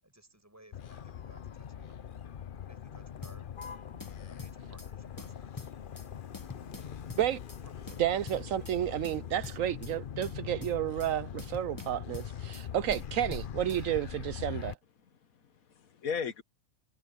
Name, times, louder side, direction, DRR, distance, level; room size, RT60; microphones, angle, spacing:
voice 1, 0.0-1.9 2.5-3.8 4.2-5.7 7.6-8.1 13.5-13.6, right 1 dB, 10° right, 7.5 m, -59 dB
Motor vehicle (road), 0.7-14.8, left 8 dB, 45° left, 0.8 m, -42 dB
sound 1, 3.2-3.7 4.0-4.9 5.2-6.1 6.3-7.6 7.9-8.8 9.0-9.9 10.2-11.1 11.4-12.7 12.9-13.8, left 3 dB, 15° left, 0.9 m, -47 dB
voice 2, 8.0-14.8, right 11 dB, 75° right, 1.0 m, -31 dB
voice 3, 15.0-16.4, left 6 dB, 80° left, 1.7 m, -37 dB
omnidirectional pair, 1.5 m